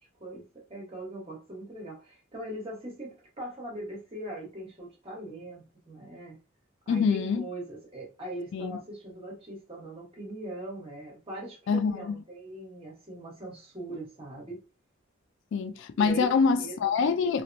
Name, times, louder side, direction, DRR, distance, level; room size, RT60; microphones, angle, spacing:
voice 1, 0.2-6.4 6.9-14.6 16.0-16.3 16.6-16.9, right 1 dB, 30° right, 1.1 m, -41 dB
voice 2, 6.9-7.5 8.5-8.8 11.7-12.2 15.5-17.4, left 5 dB, 65° left, 0.3 m, -25 dB
2.9 x 2.0 x 2.5 m
head